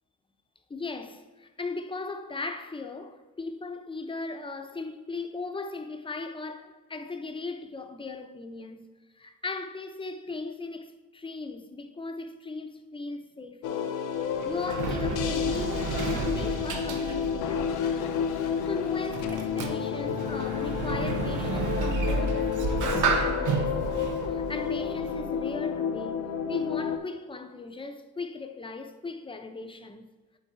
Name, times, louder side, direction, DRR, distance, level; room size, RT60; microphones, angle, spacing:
voice 1, 0.7-18.2 18.6-30.1, left 3 dB, 15° left, 0.6 m, -38 dB
sound 1, 13.6-27.0, left 7 dB, 85° left, 0.6 m, -30 dB
Sliding door, 14.1-25.6, right 4 dB, 80° right, 0.9 m, -32 dB
7.9 x 3.9 x 4.5 m
cardioid pair, 90°, 30 cm